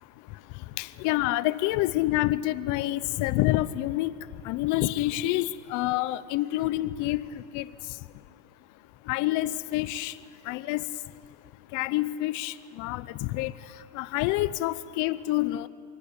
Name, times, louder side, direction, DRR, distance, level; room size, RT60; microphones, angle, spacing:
voice 1, 0.8-4.2 4.4-7.7 9.1-10.1 10.5-10.8 11.7-13.5 13.9-15.7, left 16 dB, 40° left, 17 dB, 0.8 m, -27 dB
28.0 x 22.5 x 8.8 m, 2.3 s
supercardioid pair, 145°, 45 cm